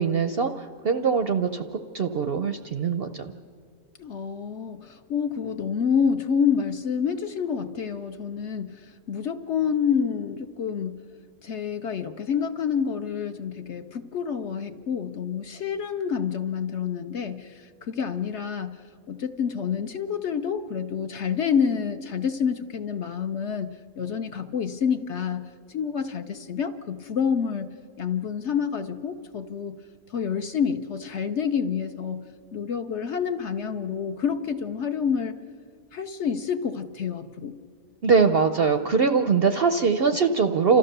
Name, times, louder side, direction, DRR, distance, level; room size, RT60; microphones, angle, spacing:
voice 1, 0.0-3.3 38.0-40.8, right 5 dB, 55° right, 8 dB, 0.7 m, -22 dB
voice 2, 4.0-11.0 11.4-18.8 19.1-29.8 30.1-32.3 32.5-35.4 35.9-37.6, left 7 dB, 55° left, 8 dB, 0.9 m, -28 dB
30.0 x 13.5 x 6.7 m, 2.1 s
omnidirectional pair, 1.6 m